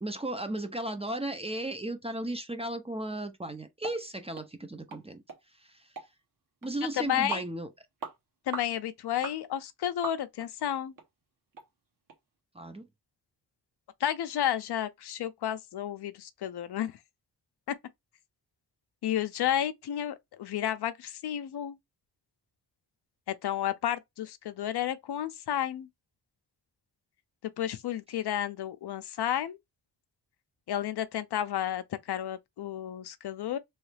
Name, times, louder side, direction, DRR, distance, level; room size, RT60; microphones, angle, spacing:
voice 1, 0.0-5.2 5.6-5.9 6.6-7.7 12.5-12.9, right 1 dB, 15° right, 0.5 m, -35 dB
sound 1, 3.8-4.0 4.3-4.5 4.9-5.0 5.3-5.4 6.0-6.1 6.6-6.7 7.3-7.5 8.0-8.2 8.5-8.7 9.2-9.4 10.0-10.5 11.0-11.1 11.5-11.7 12.1-12.2, right 4 dB, 55° right, 1.0 m, -39 dB
voice 2, 7.0-7.4 8.5-10.9 14.0-16.9 19.0-21.8 23.3-25.9 27.6-29.6 30.7-33.6, left 11 dB, 75° left, 0.6 m, -32 dB
3.1 x 2.3 x 3.2 m
wide cardioid pair, 110°, 40 cm